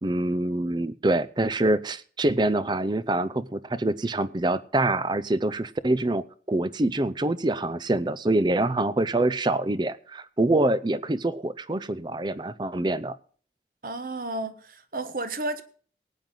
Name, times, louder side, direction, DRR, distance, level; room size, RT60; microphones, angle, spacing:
voice 1, 0.0-13.1, right 2 dB, 25° right, 0.5 m, -25 dB
voice 2, 13.8-15.6, right 2 dB, 50° right, 1.2 m, -32 dB
19.0 x 9.1 x 3.8 m
head